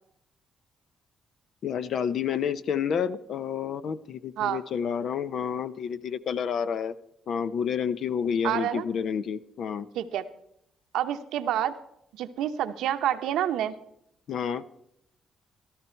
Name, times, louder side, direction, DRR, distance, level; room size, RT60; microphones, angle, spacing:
voice 1, 1.6-6.9 7.3-9.9 14.3-14.6, left 7 dB, 65° left, 14 dB, 0.7 m, -29 dB
voice 2, 8.4-8.8 10.0-10.2 10.9-11.7 12.1-13.7, right 11 dB, 85° right, 10 dB, 0.8 m, -28 dB
15.5 x 12.5 x 4.5 m, 0.75 s
cardioid pair, 90°, 0 cm